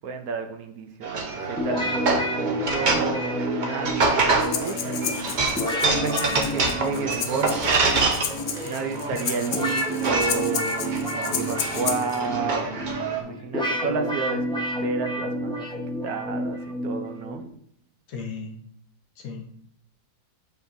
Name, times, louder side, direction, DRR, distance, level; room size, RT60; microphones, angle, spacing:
voice 1, 0.0-4.8 5.8-7.9 8.6-12.8 13.1-15.7 16.0-17.5, right 5 dB, 70° right, 6 dB, 1.1 m, -31 dB
sound 1, 1.0-13.2, right 3 dB, 45° right, 0.6 m, -27 dB
sound 2, 1.6-17.5, equal, 5° left, 0.7 m, -30 dB
Breathing, 4.4-12.2, left 7 dB, 80° left, 0.5 m, -33 dB
voice 2, 18.1-18.6 19.2-19.5, left 5 dB, 65° left, 2 dB, 1.3 m, -35 dB
7.0 x 5.3 x 2.6 m, 0.67 s
omnidirectional pair, 1.7 m